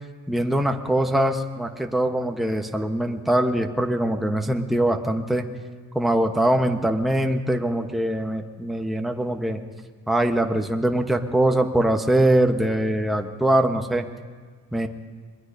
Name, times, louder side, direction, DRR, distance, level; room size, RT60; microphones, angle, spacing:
voice 1, 0.3-5.5 5.9-9.6 10.1-14.1 14.7-14.9, right 1 dB, ahead, 4 dB, 1.0 m, -22 dB
26.0 x 20.5 x 2.7 m, 1.5 s
cardioid pair, 90°, 30 cm